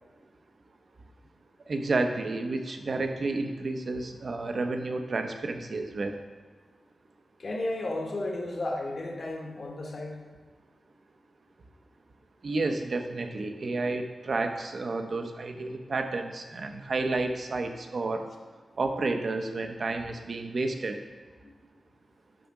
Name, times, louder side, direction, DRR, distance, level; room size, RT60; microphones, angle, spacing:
voice 1, 1.7-6.1 12.4-18.3 18.8-21.0, right 3 dB, 50° right, 5 dB, 0.8 m, -31 dB
voice 2, 7.4-10.2 21.4-21.5, left 2 dB, 45° left, 0 dB, 1.4 m, -33 dB
9.1 x 4.2 x 5.9 m, 1.5 s
wide cardioid pair, 125°, 0 cm